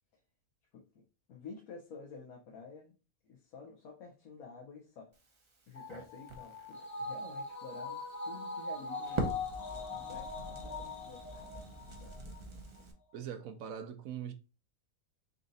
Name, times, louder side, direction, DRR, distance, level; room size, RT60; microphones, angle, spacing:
voice 1, 1.3-2.9 3.2-5.1 5.7-9.3 9.9-12.2, left 4 dB, 80° left, 1.3 m, -50 dB
Crackle, 5.1-12.9, right 2 dB, 35° right, 0.5 m, -44 dB
sound 1, 5.7-12.4 12.8-12.9, left 3 dB, 50° left, 1.3 m, -42 dB
voice 2, 13.1-14.3, right 8 dB, 75° right, 1.0 m, -41 dB
4.1 x 2.5 x 3.9 m
omnidirectional pair, 1.5 m